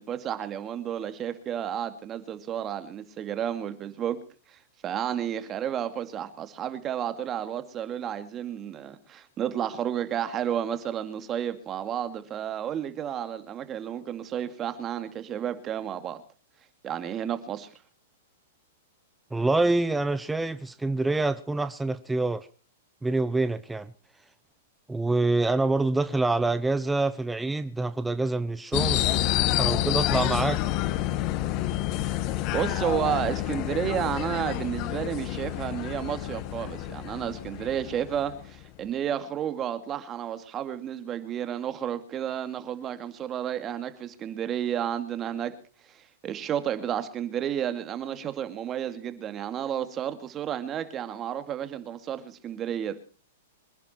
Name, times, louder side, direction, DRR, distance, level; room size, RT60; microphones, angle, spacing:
voice 1, 0.0-4.2 4.5-16.2 16.8-17.7 32.5-45.5 45.9-53.0, right 9 dB, 25° right, 2.4 m, -31 dB
voice 2, 19.3-22.5 23.0-23.9 24.9-29.1 29.6-30.6, right 2 dB, 5° right, 0.9 m, -26 dB
sound 1, 28.7-38.6, left 14 dB, 40° left, 1.6 m, -28 dB
25.5 x 11.0 x 4.5 m
hypercardioid pair, 135°, 0 cm